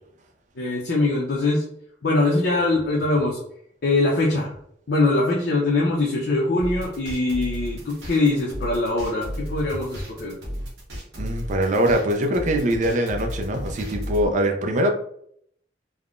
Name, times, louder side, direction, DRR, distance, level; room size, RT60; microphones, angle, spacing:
voice 1, 0.6-1.6 2.0-3.4 3.8-4.5 4.9-10.4, left 2 dB, 65° left, -3 dB, 0.6 m, -22 dB
sound 1, 6.6-14.3, equal, 70° right, 1.0 m, -33 dB
voice 2, 11.2-14.9, right 1 dB, 45° right, 4 dB, 0.4 m, -22 dB
3.5 x 2.1 x 2.4 m, 0.67 s
head